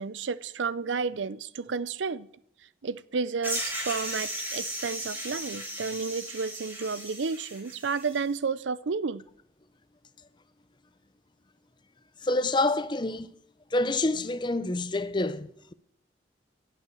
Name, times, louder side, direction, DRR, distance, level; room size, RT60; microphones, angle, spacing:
voice 1, 0.0-2.3 2.8-9.2, right 5 dB, 90° right, 0.6 m, -31 dB
sound 1, 3.4-8.2, right 1 dB, 10° right, 4.5 m, -36 dB
voice 2, 12.2-13.3 13.7-15.7, left 2 dB, 25° left, 0.7 m, -27 dB
16.5 x 8.4 x 6.9 m
head